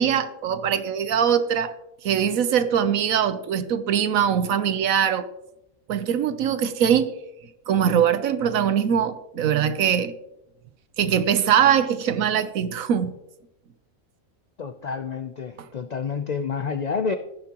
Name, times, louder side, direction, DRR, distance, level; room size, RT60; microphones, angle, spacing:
voice 1, 0.0-1.7 2.0-5.3 5.9-7.1 7.7-10.1 11.0-13.1, right 8 dB, 80° right, 1.1 m, -22 dB
voice 2, 14.6-17.2, left 5 dB, 60° left, 0.4 m, -29 dB
15.0 x 9.7 x 2.9 m
omnidirectional pair, 1.4 m